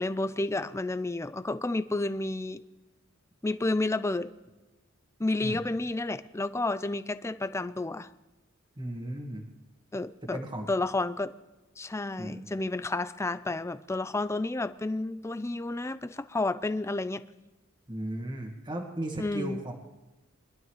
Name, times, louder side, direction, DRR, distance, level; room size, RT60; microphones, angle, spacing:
voice 1, 0.0-2.6 3.4-4.3 5.2-8.1 9.9-10.4 10.7-11.3 11.8-17.2 19.2-19.6, left 2 dB, 15° left, 13 dB, 0.4 m, -31 dB
voice 2, 8.8-9.5 10.3-10.7 12.2-12.5 17.9-19.7, right 1 dB, 20° right, 2 dB, 1.7 m, -35 dB
23.5 x 12.0 x 3.1 m, 1.1 s
head